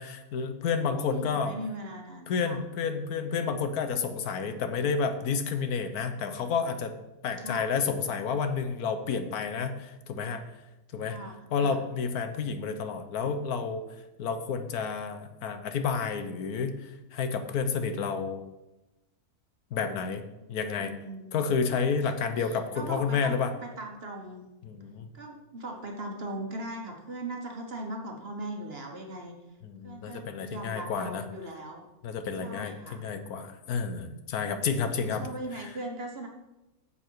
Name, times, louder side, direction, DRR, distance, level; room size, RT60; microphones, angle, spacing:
voice 1, 0.0-1.5 2.3-7.0 7.2-10.4 10.9-11.2 11.5-13.8 14.2-18.4 19.7-20.2 20.5-20.9 21.3-23.5 24.6-25.1 29.6-31.2 32.0-35.3 35.6-35.7, left 5 dB, 80° left, 8 dB, 1.3 m, -30 dB
voice 2, 0.9-2.6 7.4-7.7 11.0-11.8 20.8-21.6 22.5-24.5 25.1-29.4 29.8-31.9 32.4-33.1 35.0-36.3, right 1 dB, 45° right, 2 dB, 1.4 m, -39 dB
10.0 x 7.1 x 4.6 m, 0.98 s
omnidirectional pair, 1.6 m